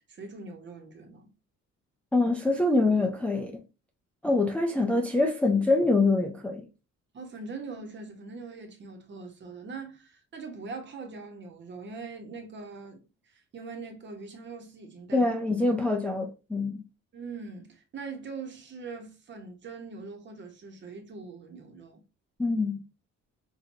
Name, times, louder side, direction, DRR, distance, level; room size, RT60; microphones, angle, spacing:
voice 1, 0.1-1.3 7.1-13.0 13.5-15.2 17.1-22.0, right 4 dB, 40° right, 1.1 m, -42 dB
voice 2, 2.1-3.6 4.2-6.6 15.1-16.8 22.4-22.8, left 2 dB, 5° left, 0.4 m, -25 dB
6.0 x 2.5 x 2.7 m
cardioid pair, 160°, 29 cm